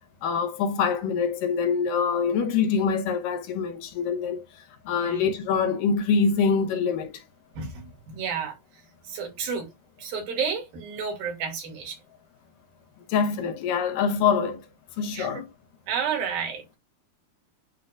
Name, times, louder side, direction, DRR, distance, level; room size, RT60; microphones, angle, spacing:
voice 1, 0.2-4.4 4.9-7.2 13.1-14.6 15.0-15.5, left 6 dB, 75° left, 2.5 m, -25 dB
voice 2, 7.6-8.6 9.0-9.7 10.0-12.0 15.1-15.4 15.9-16.6, right 6 dB, 85° right, 4.3 m, -31 dB
10.5 x 3.8 x 2.4 m
omnidirectional pair, 4.1 m